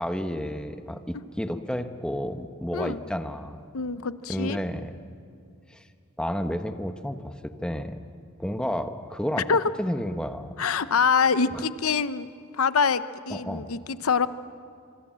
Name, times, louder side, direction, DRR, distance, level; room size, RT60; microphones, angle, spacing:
voice 1, 0.0-3.6 4.3-5.1 5.7-5.8 6.2-8.0 8.4-9.5 9.8-10.5 11.5-11.6 13.3-13.7, equal, 5° left, 8 dB, 1.0 m, -31 dB
voice 2, 3.7-4.6 9.5-9.6 10.6-12.3 12.5-14.3, left 5 dB, 85° left, 14 dB, 0.7 m, -25 dB
26.5 x 25.5 x 7.5 m, 2.4 s
head